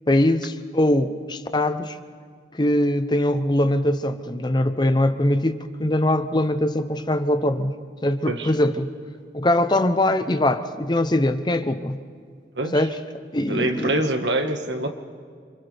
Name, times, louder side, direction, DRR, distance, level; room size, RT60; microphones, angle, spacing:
voice 1, 0.1-2.0 2.5-7.7 8.0-8.9 9.3-12.0 12.7-13.0 13.3-13.9, left 1 dB, 25° left, 10 dB, 0.7 m, -22 dB
voice 2, 12.6-12.9 13.4-14.9, right 1 dB, 80° right, 5 dB, 1.7 m, -25 dB
28.5 x 26.5 x 3.5 m, 2.1 s
head